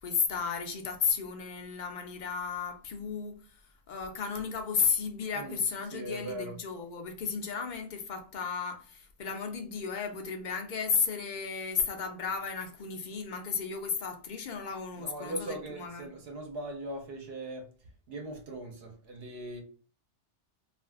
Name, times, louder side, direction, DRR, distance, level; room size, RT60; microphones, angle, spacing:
voice 1, 0.0-3.6 3.9-16.1, left 6 dB, 55° left, 0.6 m, -33 dB
voice 2, 5.9-6.5 15.0-17.7 18.1-19.6, right 1 dB, 60° right, 1.0 m, -40 dB
2.5 x 2.4 x 3.4 m
omnidirectional pair, 1.2 m